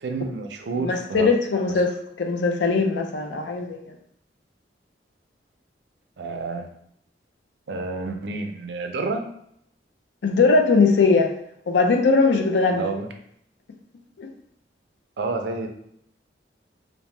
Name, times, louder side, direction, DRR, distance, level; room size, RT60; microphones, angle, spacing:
voice 1, 0.0-1.3 6.2-6.7 7.7-9.3 12.8-13.1 15.2-15.7, right 3 dB, 70° right, 5 dB, 0.4 m, -29 dB
voice 2, 0.7-3.9 10.2-11.3 11.7-12.9 14.2-14.3, left 4 dB, 85° left, 4 dB, 0.4 m, -20 dB
2.7 x 2.1 x 3.2 m, 0.70 s
head